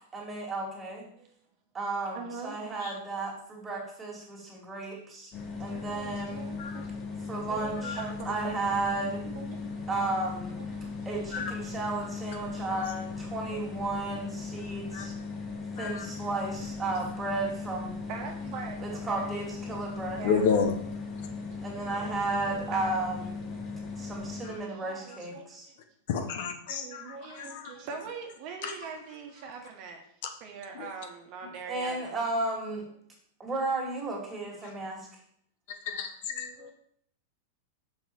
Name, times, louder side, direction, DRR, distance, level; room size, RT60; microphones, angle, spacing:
voice 1, 0.1-1.0 1.7-5.3 5.6-6.4 7.3-8.0 8.3-9.3 9.9-10.6 11.1-15.1 15.8-17.9 18.8-20.3 21.6-23.4 24.0-25.6 31.7-32.8 33.4-35.1, right 2 dB, 15° right, -3 dB, 2.2 m, -33 dB
voice 2, 2.1-2.6 4.7-4.8 5.7-6.9 7.5-9.8 10.6-11.8 12.6-12.7 13.5-13.6 14.1-14.3 15.8-15.9 16.2-16.3 18.1-19.3 20.1-20.4 21.5-23.1 24.7-25.7 26.7-30.0 30.4-32.2 36.3-36.7, right 5 dB, 45° right, 2 dB, 1.3 m, -43 dB
sound 1, 5.3-24.6, left 4 dB, 25° left, 1.2 m, -38 dB
voice 3, 15.8-16.1 20.2-20.8 24.4-24.6 26.1-27.7 28.6-28.7 30.7-30.9 35.9-36.7, left 6 dB, 60° left, 7 dB, 0.9 m, -31 dB
5.6 x 5.5 x 4.5 m, 0.65 s
supercardioid pair, 145°, 0 cm